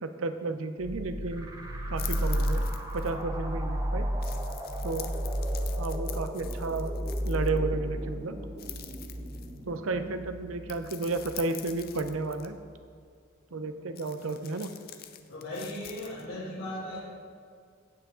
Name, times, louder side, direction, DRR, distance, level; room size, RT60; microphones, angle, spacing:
voice 1, 0.0-1.5 1.9-2.6 2.9-4.1 4.8-5.1 5.8-6.9 7.2-8.4 9.7-12.6 13.5-14.7, right 3 dB, 70° right, 9 dB, 0.6 m, -32 dB
sound 1, 0.8-12.2, equal, 20° right, 0.9 m, -33 dB
sound 2, 2.0-3.2 4.2-7.6 8.6-9.7 10.7-12.5 14.0-16.3, left 12 dB, 45° left, 0.6 m, -45 dB
voice 2, 15.3-17.0, left 1 dB, 85° left, -11 dB, 2.7 m, -37 dB
16.0 x 5.8 x 3.7 m, 2.1 s
head